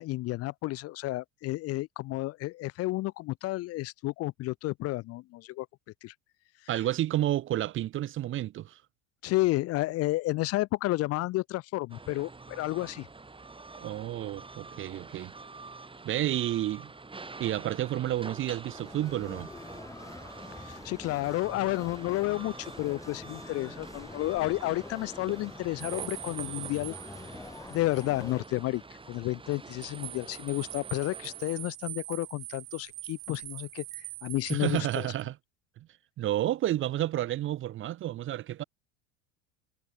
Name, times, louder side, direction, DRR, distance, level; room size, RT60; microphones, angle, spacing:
voice 1, 0.0-5.7 6.0-6.1 9.2-13.1 20.6-27.0 27.7-35.1, left 18 dB, 45° left, 0.5 m, -31 dB
voice 2, 6.7-8.8 13.8-15.3 16.0-16.9 17.4-19.5 34.5-35.4 36.2-38.6, right 13 dB, 35° right, 0.6 m, -30 dB
sound 1, 11.9-31.7, right 3 dB, 15° right, 4.5 m, -47 dB
sound 2, 18.6-28.5, left 3 dB, 10° left, 1.2 m, -46 dB
sound 3, 25.8-28.1 28.4-28.5 29.5-35.2, right 22 dB, 80° right, 1.0 m, -43 dB
supercardioid pair, 95°, 36 cm